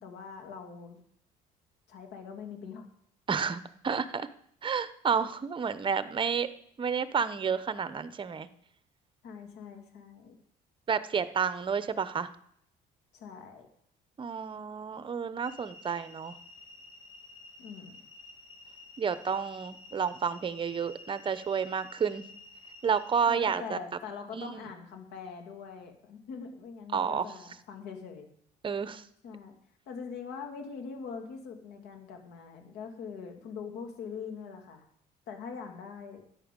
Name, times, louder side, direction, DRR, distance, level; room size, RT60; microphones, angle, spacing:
voice 1, 0.0-1.0 1.9-2.9 9.2-10.3 13.1-13.7 17.6-18.0 23.3-28.3 29.2-29.6 29.9-34.8 35.3-36.2, left 6 dB, 85° left, 4 dB, 2.4 m, -43 dB
voice 2, 3.3-4.3 4.6-6.5 6.8-8.5 10.9-12.3 14.2-16.4 19.0-22.2 22.8-23.8 24.3-24.7 26.9-27.3 28.6-29.0, right 6 dB, 30° right, 13 dB, 0.8 m, -30 dB
sound 1, 15.4-23.2, left 3 dB, 25° left, 2.6 m, -51 dB
13.0 x 9.6 x 5.3 m, 0.68 s
cardioid pair, 110°, 17 cm